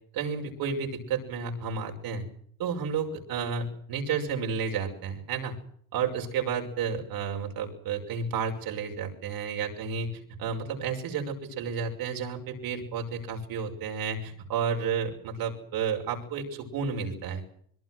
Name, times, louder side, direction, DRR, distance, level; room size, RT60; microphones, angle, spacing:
voice 1, 0.1-2.3 2.6-5.6 5.9-17.4, right 6 dB, 90° right, 1 dB, 6.0 m, -31 dB
25.0 x 22.5 x 6.2 m, 0.64 s
cardioid pair, 135°, 35 cm